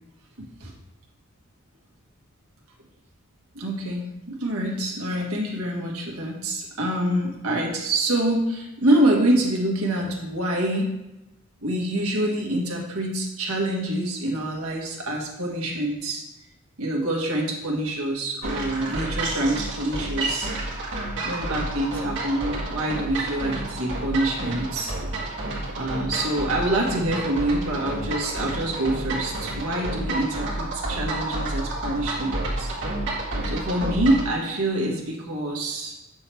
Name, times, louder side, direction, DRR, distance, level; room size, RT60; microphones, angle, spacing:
voice 1, 0.4-0.7 3.5-10.9 11.6-16.2 16.8-20.5 21.2-24.9 25.7-32.7 33.4-35.9, right 1 dB, 85° right, -1 dB, 1.6 m, -26 dB
sound 1, 18.4-34.3, right 2 dB, 55° right, 1.8 m, -30 dB
7.6 x 6.2 x 3.4 m, 0.94 s
head